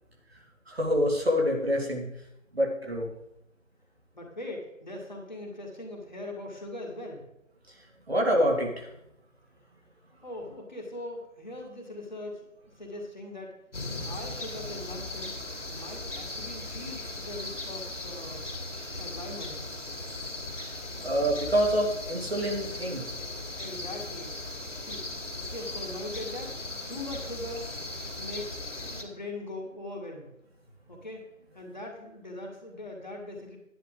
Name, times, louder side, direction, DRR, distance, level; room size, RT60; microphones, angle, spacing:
voice 1, 0.7-2.1 2.5-3.1 8.1-8.9 21.0-23.1, equal, 50° right, 0 dB, 2.5 m, -26 dB
voice 2, 4.1-7.2 10.2-12.4 12.8-13.5 14.0-15.3 15.7-18.5 19.0-19.6 23.6-24.4 24.8-25.0 25.3-26.5 26.9-27.7 28.2-30.3 30.9-31.2 31.5-33.6, left 1 dB, 35° left, -1 dB, 1.9 m, -40 dB
sound 1, 13.7-29.0, left 2 dB, 60° left, 2.6 m, -38 dB
10.5 x 10.5 x 3.8 m, 0.80 s
figure-of-eight pair, 170°, 39 cm